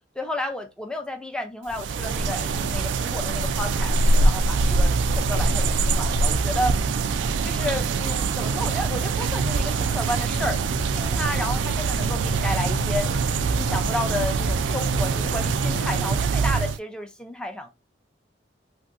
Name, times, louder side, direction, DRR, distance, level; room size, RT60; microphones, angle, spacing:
voice 1, 0.2-6.7 7.4-13.1 13.6-17.7, left 1 dB, 5° left, 0.5 m, -32 dB
sound 1, 1.7-16.8, right 4 dB, 90° right, 0.3 m, -24 dB
sound 2, 3.1-16.1, left 3 dB, 60° left, 0.3 m, -38 dB
3.0 x 2.7 x 2.5 m
head